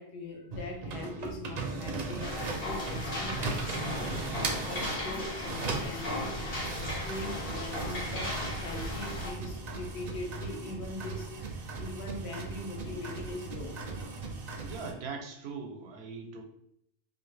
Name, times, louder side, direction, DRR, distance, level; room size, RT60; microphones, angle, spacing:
voice 1, 0.0-6.3 6.6-14.3, left 2 dB, 80° left, 1 dB, 0.9 m, -42 dB
sound 1, 0.5-5.1 5.4-14.9, right 3 dB, 55° right, 0.5 m, -38 dB
sound 2, 2.2-9.3, left 1 dB, 65° left, 1.2 m, -36 dB
sound 3, 4.9-10.9, left 1 dB, 35° left, 0.5 m, -49 dB
voice 2, 14.6-16.4, right 4 dB, 85° right, 3 dB, 0.9 m, -40 dB
2.6 x 2.5 x 3.2 m, 0.74 s
omnidirectional pair, 1.1 m